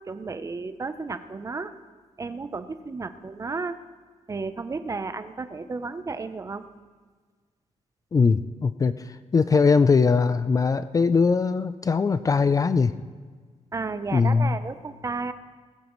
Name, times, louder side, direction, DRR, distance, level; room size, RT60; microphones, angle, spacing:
voice 1, 0.1-1.7 2.2-3.8 4.3-6.6 13.7-15.3, right 4 dB, 25° right, 11 dB, 0.7 m, -33 dB
voice 2, 8.1-13.0 14.1-14.6, left 5 dB, 30° left, 12 dB, 0.4 m, -21 dB
19.5 x 15.5 x 3.1 m, 1.5 s
wide cardioid pair, 135°, 12 cm